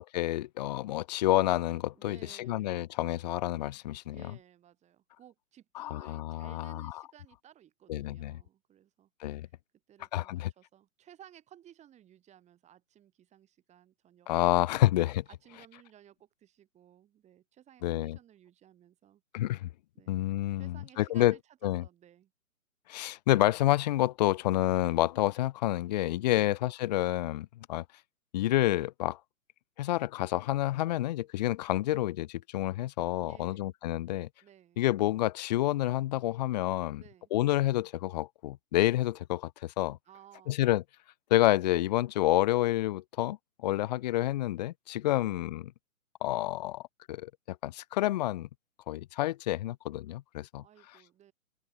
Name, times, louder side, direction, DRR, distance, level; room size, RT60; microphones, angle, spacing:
voice 1, 0.0-4.2 5.8-7.0 7.9-8.4 9.2-9.5 10.1-10.5 14.3-15.2 17.8-18.2 19.3-19.7 20.1-21.3 21.6-21.8 22.9-27.8 28.3-29.2 29.8-34.3 34.8-37.0 37.3-40.0 40.5-40.8 41.3-45.7 46.2-46.8 47.1-48.5 48.9-50.6, left 15 dB, 30° left, 0.8 m, -29 dB
voice 2, 1.9-2.8 3.9-9.1 9.4-9.5 9.9-14.3 14.7-14.9 15.3-19.2 19.9-20.2 20.6-22.3 26.3-26.6 33.2-33.7 34.4-34.8 36.9-37.3 40.1-40.6 45.0-45.4 50.6-51.3, right 11 dB, 15° right, 4.5 m, -58 dB
open air
figure-of-eight pair, 135°, 42 cm